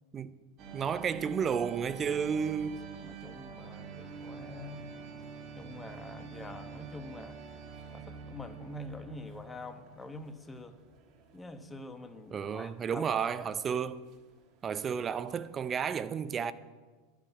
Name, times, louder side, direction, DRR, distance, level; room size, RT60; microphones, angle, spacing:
sound 1, 0.6-15.9, right 5 dB, 50° right, 1.6 m, -47 dB
voice 1, 0.7-2.9 12.3-14.0 14.6-16.5, right 7 dB, 30° right, 0.6 m, -32 dB
voice 2, 3.0-4.9 5.5-7.4 7.9-10.7 11.3-13.5, left 2 dB, 15° left, 1.1 m, -46 dB
11.5 x 7.3 x 8.2 m
hypercardioid pair, 90°, 0 cm